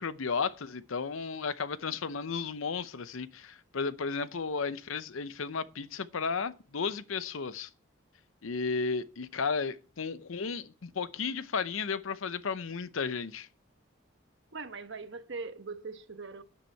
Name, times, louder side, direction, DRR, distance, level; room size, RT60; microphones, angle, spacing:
voice 1, 0.0-7.7 8.4-13.5, left 5 dB, 80° left, 0.7 m, -34 dB
voice 2, 14.5-16.4, right 4 dB, 60° right, 1.2 m, -41 dB
9.9 x 9.2 x 4.6 m
head